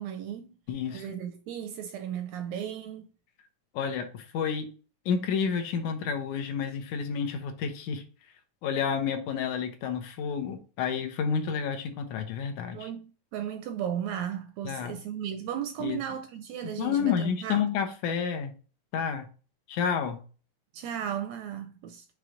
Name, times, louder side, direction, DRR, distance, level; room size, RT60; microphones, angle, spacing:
voice 1, 0.0-0.5 0.9-3.1 12.7-17.6 20.7-22.1, right 9 dB, 80° right, 1.6 m, -35 dB
voice 2, 0.7-1.1 3.7-4.7 5.1-8.0 8.6-12.9 14.6-15.0 15.8-16.0 16.6-18.5 18.9-19.3 19.7-20.2, left 7 dB, 75° left, 2.2 m, -30 dB
6.0 x 3.2 x 5.1 m
omnidirectional pair, 3.5 m